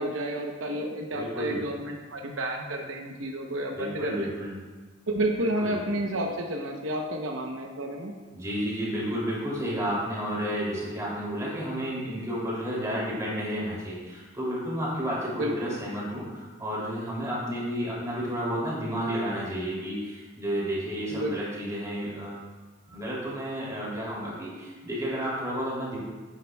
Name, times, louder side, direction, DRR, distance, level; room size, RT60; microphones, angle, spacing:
voice 1, 0.0-4.3 5.1-8.1 15.3-15.8 21.1-21.3, right 1 dB, 85° right, 2 dB, 0.8 m, -31 dB
voice 2, 1.1-1.6 3.7-4.6 5.6-5.8 8.3-22.4 22.9-26.0, equal, 15° right, -6 dB, 2.8 m, -31 dB
9.9 x 9.3 x 2.3 m, 1.3 s
head